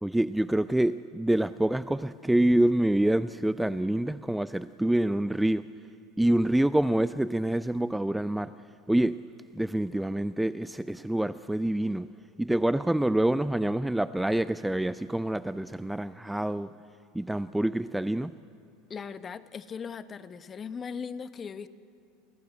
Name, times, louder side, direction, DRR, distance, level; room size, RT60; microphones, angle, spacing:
voice 1, 0.0-5.6 6.2-8.5 8.9-9.2 9.5-12.1 12.4-16.7 17.1-18.3, right 1 dB, 5° right, 14 dB, 0.5 m, -26 dB
voice 2, 18.9-21.7, left 6 dB, 30° left, 12 dB, 1.1 m, -38 dB
29.5 x 15.0 x 9.1 m, 2.3 s
hypercardioid pair, 85°, 0 cm